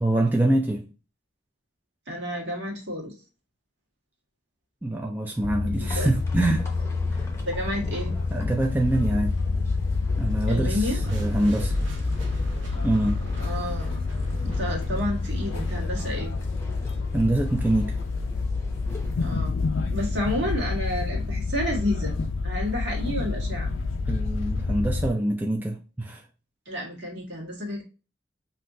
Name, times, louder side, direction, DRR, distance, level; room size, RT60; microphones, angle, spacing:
voice 1, 0.0-0.9 4.8-6.7 8.3-9.4 10.2-11.8 12.8-13.2 17.1-18.0 24.1-26.2, right 1 dB, 10° right, 0.4 m, -25 dB
voice 2, 2.1-3.1 5.8-6.1 7.5-8.2 10.5-11.0 13.4-14.1 14.4-16.4 19.2-19.6 19.9-22.2 22.4-23.7 26.7-27.8, left 1 dB, 60° right, 1.7 m, -30 dB
sound 1, 5.4-25.1, left 3 dB, 90° left, 0.5 m, -28 dB
sound 2, 5.8-19.1, left 1 dB, 15° left, 0.8 m, -45 dB
sound 3, 11.0-17.2, right 1 dB, 90° right, 1.0 m, -35 dB
5.6 x 2.6 x 2.6 m
head